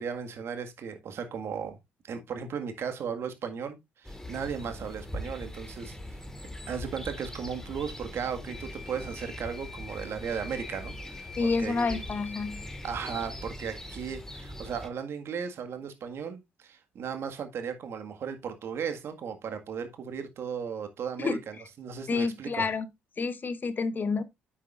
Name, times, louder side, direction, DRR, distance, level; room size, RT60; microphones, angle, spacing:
voice 1, 0.0-1.8 2.0-6.0 6.7-12.0 12.8-22.7, right 7 dB, 55° right, 1.8 m, -36 dB
sound 1, 4.0-14.9, equal, 10° left, 1.8 m, -41 dB
sound 2, 8.5-13.5, left 5 dB, 80° left, 2.7 m, -48 dB
voice 2, 11.4-12.7 21.2-21.4 22.1-22.8 23.2-24.2, left 4 dB, 40° left, 1.1 m, -29 dB
9.4 x 7.6 x 2.5 m
hypercardioid pair, 50°, 5 cm